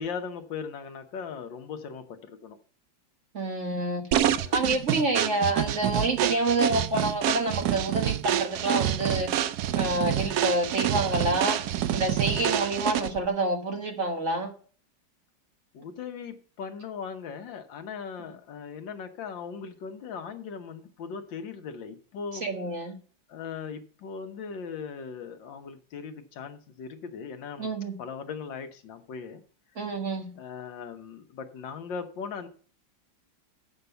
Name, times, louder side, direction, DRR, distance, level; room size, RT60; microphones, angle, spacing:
voice 1, 0.0-2.6 4.3-4.7 15.7-22.4 23.3-27.7 28.0-29.4 30.4-32.5, left 6 dB, 80° left, 8 dB, 1.7 m, -39 dB
voice 2, 3.3-4.1 4.5-9.4 9.7-14.5 22.4-22.9 27.6-27.9 29.7-30.3, right 2 dB, 40° right, 3 dB, 1.7 m, -28 dB
sound 1, 4.1-13.3, right 11 dB, 70° right, 1.0 m, -27 dB
7.9 x 6.0 x 6.7 m, 0.42 s
omnidirectional pair, 2.0 m